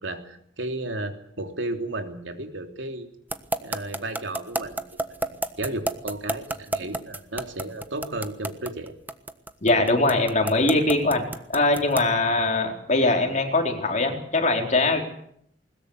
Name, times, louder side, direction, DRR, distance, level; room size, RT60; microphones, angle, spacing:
voice 1, 0.0-3.1 3.6-8.9, right 2 dB, 80° right, 5 dB, 3.3 m, -34 dB
sound 1, 3.3-12.2, right 2 dB, 10° right, 1.3 m, -29 dB
voice 2, 9.6-11.2 11.5-15.0, left 2 dB, 40° left, 3 dB, 4.4 m, -22 dB
21.0 x 20.5 x 8.2 m, 0.67 s
head